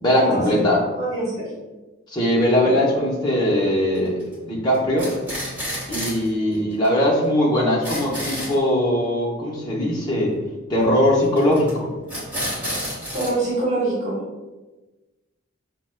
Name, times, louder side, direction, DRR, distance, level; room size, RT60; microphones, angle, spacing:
voice 1, 0.0-0.8 2.1-4.2 4.4-5.1 5.9-10.3 10.7-11.9, left 1 dB, 20° left, -5 dB, 0.8 m, -20 dB
voice 2, 1.0-1.5 6.2-6.3 13.1-14.2, right 2 dB, 35° right, -8 dB, 1.1 m, -24 dB
sound 1, 3.9-4.3 4.7-6.3 6.5-6.6 6.8-6.9 7.2-7.3 7.6-8.5 11.4-11.7 12.1-13.3, equal, 10° right, 1.4 m, -30 dB
5.8 x 2.1 x 2.2 m, 1.1 s
head